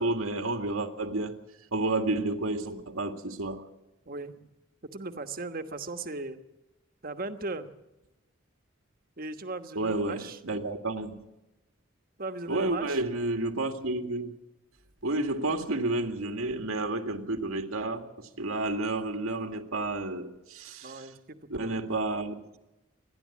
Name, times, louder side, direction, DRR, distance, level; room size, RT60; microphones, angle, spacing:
voice 1, 0.0-1.4 1.7-3.6 9.8-11.3 12.5-14.4 15.0-21.1 21.5-22.4, right 2 dB, 85° right, 2.0 m, -31 dB
voice 2, 4.1-4.4 4.8-6.4 7.0-7.7 9.2-10.4 12.2-13.0 20.8-21.7, right 3 dB, 40° right, 1.3 m, -37 dB
28.0 x 11.0 x 8.5 m
head